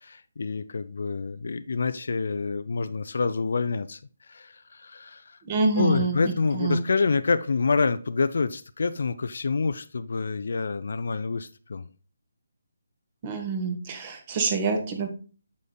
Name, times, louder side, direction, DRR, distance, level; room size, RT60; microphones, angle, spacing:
voice 1, 0.0-4.0 4.3-5.4 5.8-11.9, left 4 dB, 55° left, 13 dB, 0.5 m, -27 dB
voice 2, 5.4-6.2 6.5-6.8 13.2-15.1, right 4 dB, 30° right, 5 dB, 1.3 m, -26 dB
8.4 x 6.5 x 2.3 m, 0.36 s
figure-of-eight pair, 145°, 0 cm